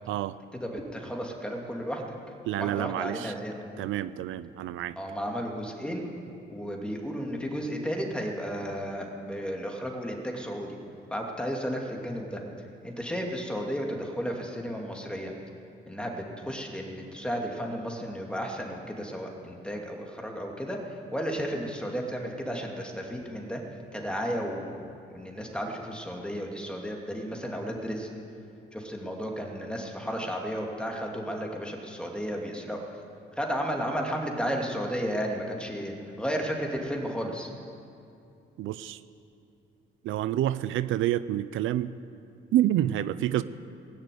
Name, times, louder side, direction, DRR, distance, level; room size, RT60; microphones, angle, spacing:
voice 1, 0.5-2.1 2.6-3.6 5.0-6.0 6.5-10.8 11.1-12.4 12.8-15.3 15.9-23.6 23.9-24.7 25.1-28.1 28.7-33.0 33.4-37.5, equal, 5° left, 0 dB, 2.6 m, -33 dB
voice 2, 2.5-3.3 3.8-5.0 38.6-39.0 40.0-42.0 42.5-43.4, right 13 dB, 80° right, 14 dB, 0.5 m, -28 dB
20.0 x 6.7 x 9.4 m, 2.6 s
cardioid pair, 90°, 20 cm